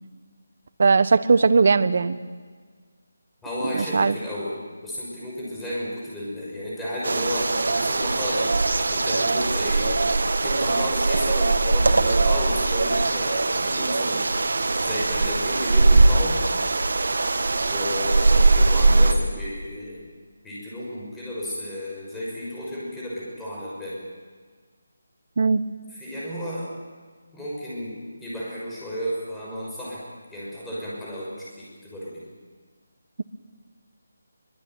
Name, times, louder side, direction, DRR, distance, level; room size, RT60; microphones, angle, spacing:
voice 1, 0.8-2.2 3.7-4.1 25.4-25.6, right 4 dB, 45° right, 13 dB, 1.2 m, -18 dB
voice 2, 3.4-8.5 8.8-14.5 14.8-16.4 17.6-20.0 20.4-24.0 25.9-26.7 27.3-30.0 30.3-32.2, equal, 5° left, -7 dB, 6.1 m, -32 dB
sound 1, 7.0-19.1, right 3 dB, 70° right, 2.0 m, -21 dB
23.5 x 21.5 x 9.3 m, 1.5 s
figure-of-eight pair, 175°, 0 cm